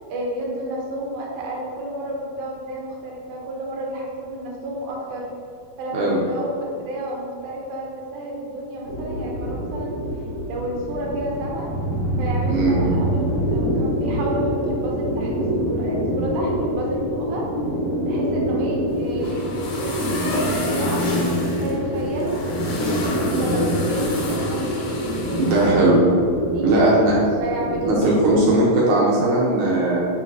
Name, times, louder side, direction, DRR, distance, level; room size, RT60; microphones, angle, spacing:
voice 1, 0.1-5.3 5.8-10.0 10.5-11.7 12.2-17.5 18.1-21.2 21.6-25.8 26.5-26.7 27.4-28.1, right 1 dB, 90° right, -2 dB, 2.8 m, -31 dB
sound 1, 8.8-28.5, equal, 50° left, 1.3 m, -25 dB
voice 2, 12.5-12.8 25.4-26.1 26.6-27.2 27.9-30.0, right 2 dB, 70° right, -5 dB, 2.0 m, -18 dB
sound 2, 18.9-25.7, left 2 dB, 85° left, 2.9 m, -32 dB
9.1 x 3.8 x 2.7 m, 2.4 s
omnidirectional pair, 4.1 m